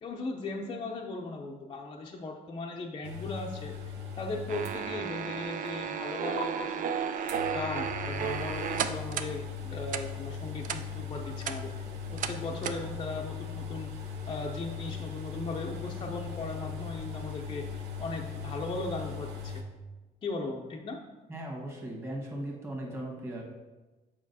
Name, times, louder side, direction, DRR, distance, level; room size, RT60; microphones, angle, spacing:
voice 1, 0.0-3.8 4.2-6.9 7.4-11.7 12.1-17.7 18.0-19.6 20.2-21.0, left 2 dB, 30° left, 1 dB, 0.5 m, -38 dB
sound 1, 3.0-5.4 5.7-5.8 6.4-6.5 7.3-19.6, left 6 dB, 85° right, 0.8 m, -39 dB
sound 2, 4.5-9.3 9.9-10.0 10.6-10.8 11.3-11.6 12.2-12.3 12.6-12.8, right 7 dB, 50° right, 0.4 m, -33 dB
voice 2, 21.3-23.4, right 1 dB, 15° right, -1 dB, 1.5 m, -38 dB
7.3 x 5.0 x 2.7 m, 1.2 s
cardioid pair, 110°, 17 cm